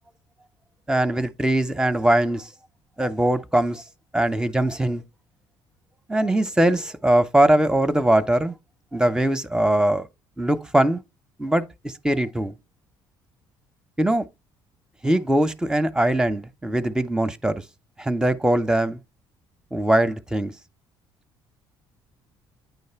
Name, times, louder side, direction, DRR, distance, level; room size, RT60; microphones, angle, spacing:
voice 1, 0.9-2.5 3.0-3.8 4.1-5.0 6.1-8.5 8.9-10.0 10.4-11.0 11.4-12.5 14.0-14.2 15.0-17.6 18.0-19.0 19.7-20.5, right 1 dB, 5° right, 0.9 m, -21 dB
9.3 x 3.2 x 4.5 m
supercardioid pair, 65°, 11 cm